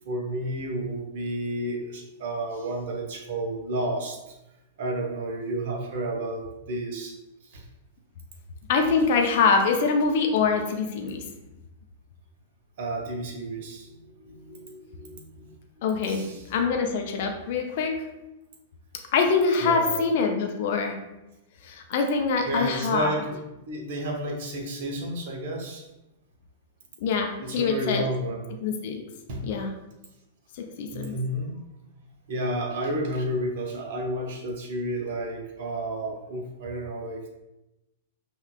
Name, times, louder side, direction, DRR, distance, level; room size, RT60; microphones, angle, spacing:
voice 1, 0.0-4.2 4.8-7.1 7.5-7.6 12.8-15.5 16.1-16.5 19.6-20.1 22.4-23.4 23.7-25.9 27.4-28.5 29.3-29.4 30.9-31.6 32.3-37.3, right 1 dB, 55° right, 1 dB, 0.8 m, -31 dB
voice 2, 8.7-11.2 15.8-17.9 19.1-21.0 21.6-23.1 27.0-28.0 28.6-29.0 29.5-29.7 30.5-31.1, left 5 dB, 50° left, 3 dB, 0.5 m, -24 dB
5.4 x 2.3 x 2.3 m, 0.96 s
figure-of-eight pair, 100°, 0 cm